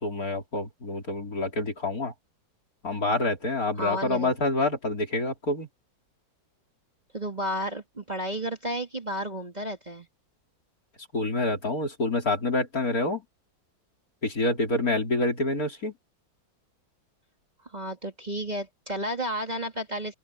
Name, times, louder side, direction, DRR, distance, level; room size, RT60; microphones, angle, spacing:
voice 1, 0.0-2.1 2.8-5.7 11.1-13.2 14.2-15.9, left 2 dB, 45° left, 4.2 m, -27 dB
voice 2, 3.8-4.3 7.1-10.1 17.6-20.1, equal, 20° right, 2.6 m, -32 dB
open air
omnidirectional pair, 2.1 m